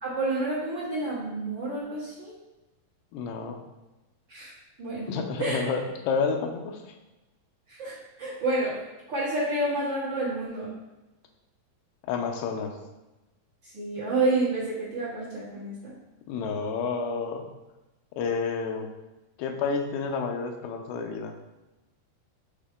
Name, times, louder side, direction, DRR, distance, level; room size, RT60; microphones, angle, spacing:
voice 1, 0.0-2.3 4.3-4.5 4.8-5.1 5.4-5.6 7.7-8.8 9.1-10.7 13.6-15.9, right 2 dB, 60° right, -10 dB, 1.2 m, -29 dB
voice 2, 3.1-3.6 5.1-6.9 12.1-12.8 16.3-17.4 18.2-18.9 19.4-21.3, left 5 dB, 80° left, 4 dB, 2.6 m, -30 dB
7.3 x 3.7 x 3.7 m, 1.1 s
omnidirectional pair, 4.5 m